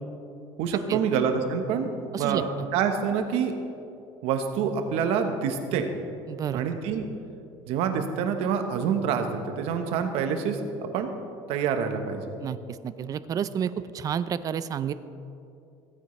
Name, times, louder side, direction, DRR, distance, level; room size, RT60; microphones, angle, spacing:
voice 1, 0.6-1.9 2.2-3.5 4.2-5.9 6.5-7.0 7.7-10.6 10.9-11.1 11.5-12.3, right 7 dB, 70° right, 6 dB, 1.1 m, -26 dB
voice 2, 6.3-6.6 12.4-14.9, right 8 dB, 35° right, 14 dB, 0.4 m, -30 dB
16.0 x 8.9 x 3.2 m, 2.6 s
cardioid pair, 125°, 11 cm